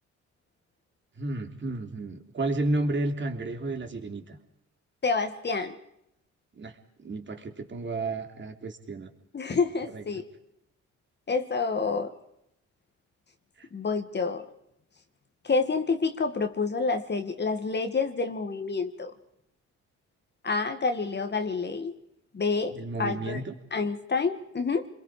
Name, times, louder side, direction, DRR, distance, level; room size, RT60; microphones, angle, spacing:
voice 1, 1.2-4.4 6.5-6.7 7.0-9.1 9.9-10.0 13.6-13.7 22.7-23.5, right 2 dB, 40° right, 4 dB, 3.3 m, -32 dB
voice 2, 5.0-5.8 9.3-10.2 11.3-12.1 13.7-14.5 15.4-19.1 20.4-21.9 22.3-23.4 23.7-24.9, left 4 dB, 35° left, 7 dB, 1.8 m, -28 dB
28.5 x 22.0 x 5.0 m, 0.77 s
cardioid pair, 90°, 30 cm